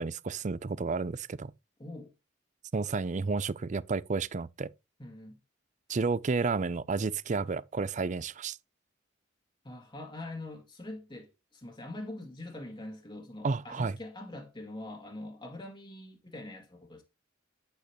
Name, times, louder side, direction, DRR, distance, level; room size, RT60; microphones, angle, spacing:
voice 1, 0.0-1.5 2.7-4.7 5.9-8.6 13.4-14.0, right 4 dB, 40° right, 0.5 m, -31 dB
voice 2, 1.8-2.1 5.0-5.4 9.6-17.0, left 1 dB, 25° left, 1.8 m, -43 dB
9.0 x 8.1 x 3.0 m
head